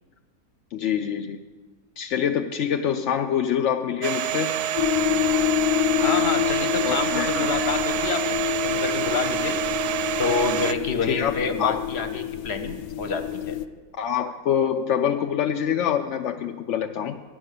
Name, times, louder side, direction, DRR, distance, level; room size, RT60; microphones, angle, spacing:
voice 1, 0.7-1.4 2.0-4.6 6.8-7.7 11.1-11.8 14.0-17.2, left 8 dB, 65° left, 5 dB, 0.7 m, -25 dB
Domestic sounds home sounds, 4.0-10.7, right 11 dB, 85° right, 1.1 m, -27 dB
sound 1, 4.8-13.7, left 13 dB, 85° left, 1.1 m, -27 dB
voice 2, 6.0-9.6 10.2-13.6, left 4 dB, 50° left, 8 dB, 1.1 m, -28 dB
12.5 x 9.4 x 6.7 m, 1.4 s
omnidirectional pair, 1.6 m